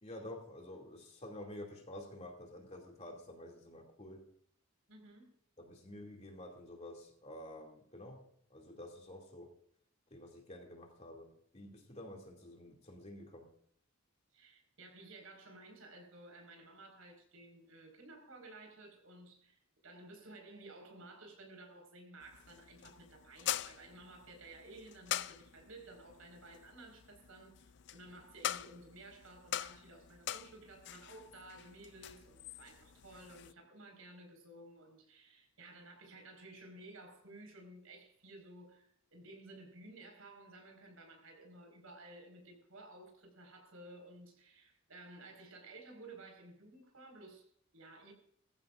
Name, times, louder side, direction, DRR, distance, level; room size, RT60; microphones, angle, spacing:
voice 1, 0.0-4.3 5.6-9.5 10.1-13.5, left 1 dB, 30° left, 2.6 m, -50 dB
voice 2, 4.9-5.3 14.3-48.1, right 2 dB, 80° right, 4.9 m, -55 dB
sound 1, 22.2-33.5, left 11 dB, 55° left, 0.4 m, -44 dB
20.0 x 14.5 x 2.5 m
head